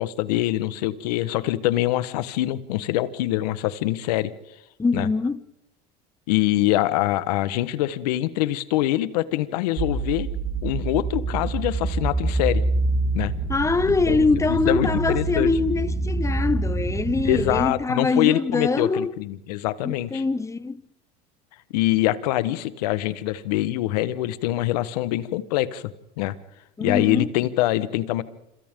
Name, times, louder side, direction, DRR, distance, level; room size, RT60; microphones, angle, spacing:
voice 1, 0.0-4.3 4.9-5.1 6.3-10.3 10.6-12.6 13.1-13.3 13.9-14.2 14.5-15.5 17.2-20.2 21.7-25.9 26.2-26.3 26.8-28.2, left 15 dB, 85° left, 1.3 m, -24 dB
voice 2, 4.8-5.4 13.5-19.1 19.8-20.8 26.8-27.3, left 3 dB, 15° left, 0.9 m, -23 dB
sound 1, 9.8-17.6, right 3 dB, 45° right, 3.3 m, -26 dB
27.0 x 27.0 x 3.8 m
supercardioid pair, 100°, 20 cm